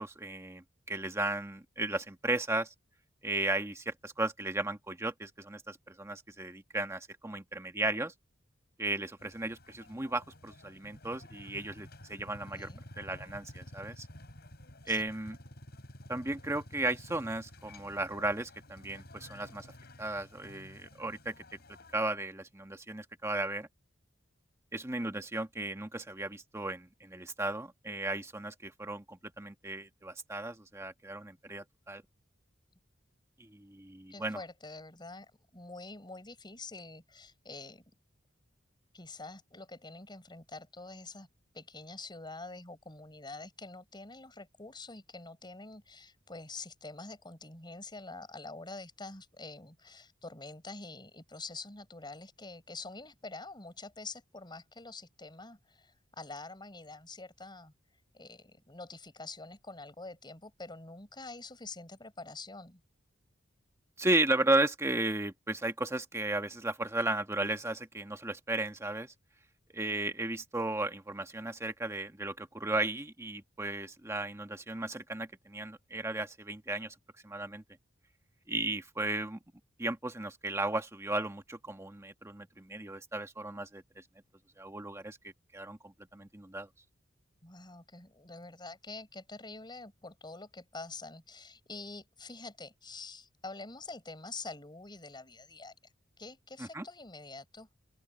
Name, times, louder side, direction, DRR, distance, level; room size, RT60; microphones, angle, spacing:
voice 1, 0.0-2.7 3.2-8.1 8.8-12.7 13.0-14.1 14.9-15.4 16.1-19.7 20.0-21.3 21.9-23.7 24.7-32.0 33.4-34.4 64.0-69.1 69.7-76.9 77.2-77.6 78.5-79.4 79.8-83.8 84.6-85.2 85.5-86.7 96.6-96.8, right 2 dB, 15° right, 1.4 m, -35 dB
sound 1, 9.2-22.0, left 1 dB, 55° left, 6.1 m, -51 dB
voice 2, 12.2-12.8 14.9-15.0 34.1-37.8 38.9-41.3 41.5-57.7 58.1-62.8 87.4-95.7 96.2-97.7, left 3 dB, 25° left, 5.5 m, -46 dB
open air
head